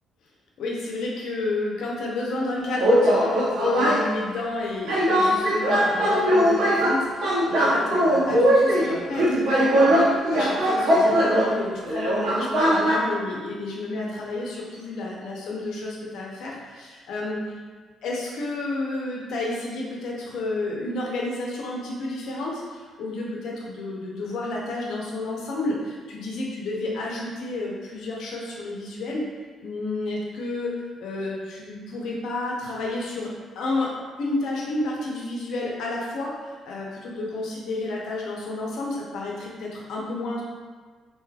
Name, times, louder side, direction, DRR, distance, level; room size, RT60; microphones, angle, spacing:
voice 1, 0.6-17.4 18.0-29.2 29.6-30.7 31.0-33.3 33.6-33.9 34.2-40.4, left 2 dB, 80° left, -3 dB, 0.7 m, -31 dB
sound 1, 2.8-4.0 4.9-11.5 11.8-13.0, equal, 85° right, 0.8 m, -20 dB
3.2 x 2.8 x 2.3 m, 1.4 s
cardioid pair, 90°, 0 cm